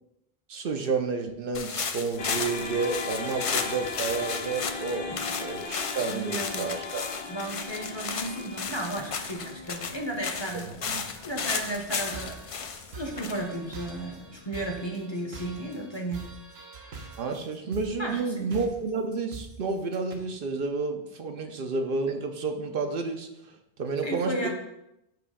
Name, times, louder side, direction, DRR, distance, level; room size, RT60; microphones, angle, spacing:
voice 1, 0.5-5.1 5.4-7.1 10.8-11.1 17.2-24.5, right 4 dB, 65° right, 5 dB, 0.8 m, -30 dB
sound 1, 1.5-14.3, left 6 dB, 50° left, 0.4 m, -34 dB
sound 2, 2.2-10.5, left 4 dB, 75° left, 1.1 m, -38 dB
voice 2, 6.1-6.7 7.3-10.8 11.2-12.4 12.9-16.3 18.0-18.5 24.0-24.5, right 1 dB, 30° left, 2 dB, 0.8 m, -34 dB
sound 3, 11.8-20.1, right 4 dB, 80° right, 1.1 m, -44 dB
7.8 x 3.0 x 4.8 m, 0.85 s
omnidirectional pair, 1.0 m